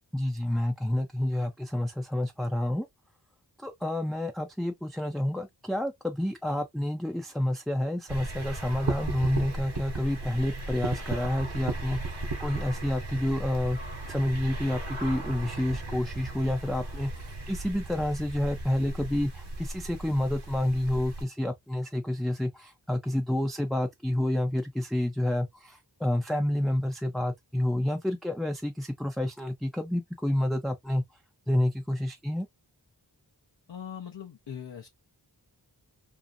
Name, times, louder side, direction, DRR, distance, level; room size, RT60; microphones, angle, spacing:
voice 1, 0.1-2.9 3.6-13.8 14.1-31.0 31.5-32.5, left 1 dB, ahead, 0.4 m, -29 dB
sound 1, 8.1-21.2, right 2 dB, 65° right, 1.0 m, -36 dB
voice 2, 33.7-34.9, left 8 dB, 70° left, 0.6 m, -40 dB
2.6 x 2.4 x 2.5 m
wide cardioid pair, 50°, 42 cm